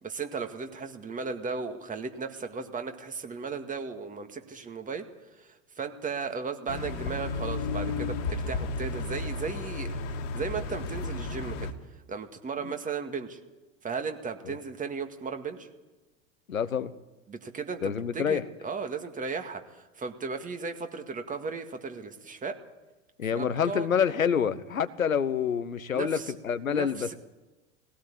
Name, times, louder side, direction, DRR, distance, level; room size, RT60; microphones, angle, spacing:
voice 1, 0.0-5.1 5.4-9.9 10.3-11.7 12.1-13.4 13.8-15.7 17.3-22.6 23.3-23.9 25.9-26.3 26.7-27.1, right 5 dB, 20° right, 6 dB, 2.0 m, -36 dB
sound 1, 6.7-11.7, left 3 dB, 55° left, 2.3 m, -33 dB
voice 2, 16.5-16.9 17.8-18.4 23.2-26.2 26.4-27.1, left 7 dB, 85° left, 13 dB, 1.1 m, -27 dB
19.5 x 17.0 x 8.6 m, 1.1 s
figure-of-eight pair, 90°, 40 cm